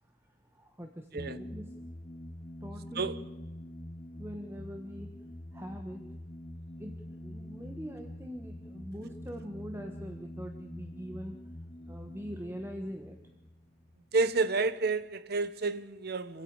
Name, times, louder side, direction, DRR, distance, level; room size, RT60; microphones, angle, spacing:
voice 1, 0.5-1.8 2.6-3.2 4.2-5.2 5.5-6.1 6.8-11.4 11.9-13.2, equal, 15° right, 1.4 m, -43 dB
sound 1, 1.2-14.4, left 1 dB, 30° left, 0.8 m, -45 dB
voice 2, 14.1-16.4, right 3 dB, 55° right, 1.2 m, -30 dB
27.0 x 15.5 x 8.9 m
head